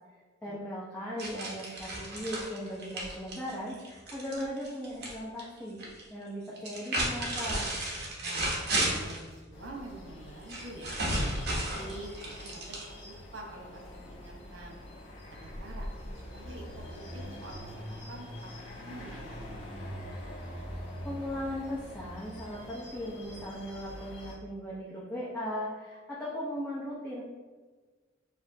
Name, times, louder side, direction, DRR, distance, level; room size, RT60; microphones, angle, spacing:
voice 1, 0.4-5.8 6.1-7.7 21.0-27.2, equal, 5° left, -8 dB, 0.7 m, -38 dB
sound 1, 1.2-5.1 5.4-6.0 6.6-9.2 10.5-13.2, right 1 dB, 55° right, 1.1 m, -33 dB
voice 2, 8.2-10.9 11.8-12.7 13.0-14.8 15.3-15.9 16.3-18.3 18.7-19.7, right 1 dB, 85° right, 0 dB, 1.0 m, -46 dB
sound 2, 9.5-24.4, equal, 65° left, 1.2 m, -44 dB
6.9 x 2.6 x 2.7 m, 1.4 s
head